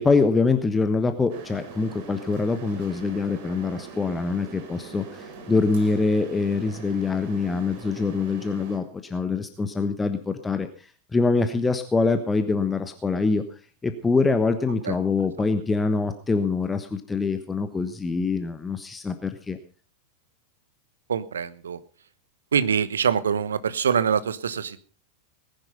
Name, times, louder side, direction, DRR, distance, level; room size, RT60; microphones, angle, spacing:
voice 1, 0.0-13.4 13.8-19.6, left 4 dB, 15° left, 9 dB, 1.2 m, -24 dB
sound 1, 1.3-8.8, right 4 dB, 50° right, 3.8 m, -42 dB
voice 2, 21.1-21.8 22.5-24.8, right 7 dB, 70° right, 15 dB, 1.0 m, -24 dB
19.5 x 10.5 x 5.4 m, 0.39 s
figure-of-eight pair, 90°, 0 cm